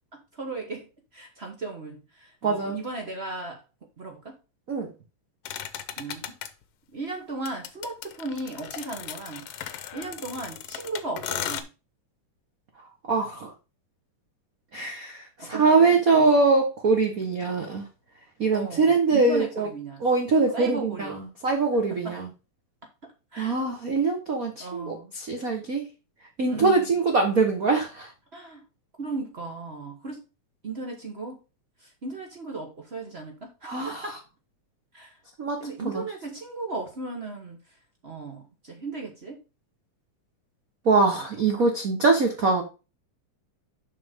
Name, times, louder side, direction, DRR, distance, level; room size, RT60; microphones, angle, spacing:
voice 1, 0.1-3.6 4.0-4.4 6.0-6.2 6.9-9.5 9.9-11.7 15.4-15.8 16.1-16.3 18.5-20.0 20.5-21.2 22.0-22.2 23.3-23.6 24.6-25.1 26.5-27.0 28.3-28.6 29.0-30.2 30.6-31.4 31.8-34.2 34.9-35.2 35.6-37.8 38.0-39.4 41.1-41.5, right 3 dB, 85° right, 2 dB, 0.5 m, -36 dB
voice 2, 2.4-2.8 4.7-4.9 13.1-13.5 14.7-17.9 18.4-19.7 20.0-21.2 21.4-22.3 23.4-25.9 26.4-28.1 33.6-34.0 35.4-35.6 35.8-36.0 40.8-42.6, right 3 dB, 50° right, 3 dB, 1.0 m, -23 dB
sound 1, 5.5-6.5 7.5-11.6, left 10 dB, 70° left, 1.6 m, -36 dB
7.3 x 5.9 x 3.6 m, 0.30 s
omnidirectional pair, 3.5 m